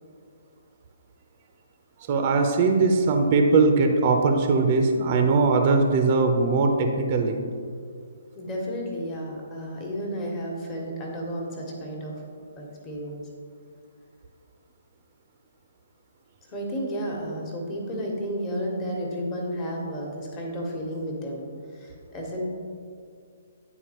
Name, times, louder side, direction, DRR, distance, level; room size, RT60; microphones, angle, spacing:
voice 1, 2.1-7.4, right 3 dB, 35° right, 4 dB, 0.6 m, -20 dB
voice 2, 8.3-12.1 12.6-13.2 16.5-21.5 21.8-22.4, equal, 25° left, -2 dB, 1.3 m, -32 dB
10.5 x 4.1 x 3.0 m, 2.2 s
figure-of-eight pair, 130°, 0 cm